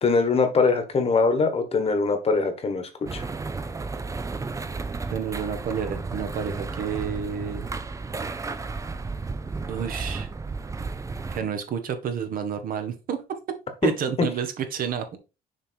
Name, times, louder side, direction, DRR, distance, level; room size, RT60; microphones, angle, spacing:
voice 1, 0.0-3.3 13.8-13.9, left 4 dB, 35° left, 8 dB, 1.4 m, -22 dB
sound 1, 3.1-11.4, right 4 dB, 20° right, 0.6 m, -33 dB
voice 2, 5.1-7.7 9.7-10.3 11.3-13.2 13.8-15.2, right 7 dB, 55° right, 8 dB, 1.3 m, -29 dB
6.5 x 3.6 x 4.5 m, 0.29 s
cardioid pair, 110°, 17 cm